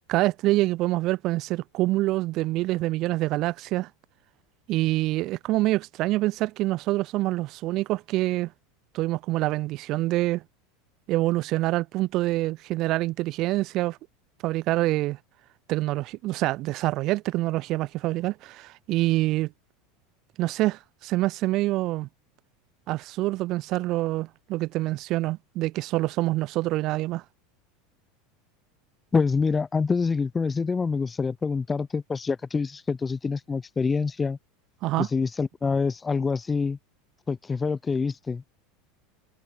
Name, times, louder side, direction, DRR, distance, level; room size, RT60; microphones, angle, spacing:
voice 1, 0.1-3.9 4.7-8.5 8.9-10.4 11.1-14.0 14.4-15.2 15.7-19.5 20.4-22.1 22.9-27.2 34.8-35.1, right 18 dB, 45° right, 5.1 m, -26 dB
voice 2, 29.1-34.4 35.0-36.8 37.3-38.4, left 4 dB, 15° left, 4.9 m, -26 dB
supercardioid pair, 135°, 0 cm